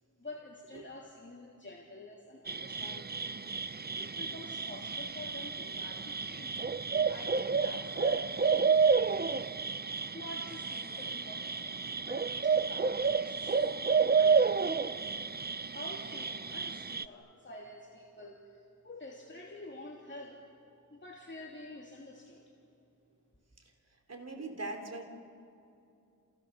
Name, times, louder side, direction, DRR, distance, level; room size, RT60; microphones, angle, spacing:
voice 1, 0.2-3.2 3.9-9.3 10.1-15.1 15.7-20.4 20.9-22.4, left 1 dB, 30° left, -2 dB, 3.0 m, -48 dB
sound 1, 2.5-17.1, right 5 dB, 25° right, 0.6 m, -30 dB
voice 2, 24.1-25.0, right 2 dB, 45° right, 3 dB, 3.6 m, -40 dB
30.0 x 29.0 x 6.9 m, 2.6 s
wide cardioid pair, 80°, 36 cm